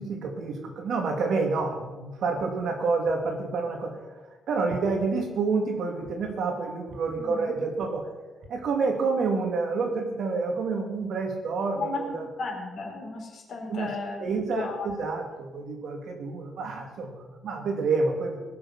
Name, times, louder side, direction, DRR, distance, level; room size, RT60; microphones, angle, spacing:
voice 1, 0.0-4.0 4.5-8.1 8.5-12.3 13.7-13.9 14.2-18.4, right 4 dB, 60° right, 2 dB, 2.7 m, -28 dB
voice 2, 7.2-7.5 11.7-12.0 12.4-14.2 14.5-15.0, left 4 dB, 50° left, -2 dB, 4.1 m, -34 dB
20.0 x 6.8 x 5.7 m, 1.2 s
cardioid pair, 140°, 0 cm